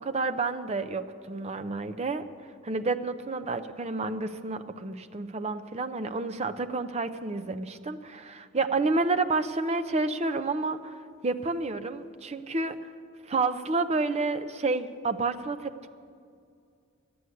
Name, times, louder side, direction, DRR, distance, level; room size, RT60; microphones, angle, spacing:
voice 1, 0.0-2.3 2.6-11.0 11.2-12.8 13.3-15.9, right 3 dB, 35° right, 9 dB, 0.6 m, -30 dB
13.0 x 7.8 x 9.5 m, 2.3 s
head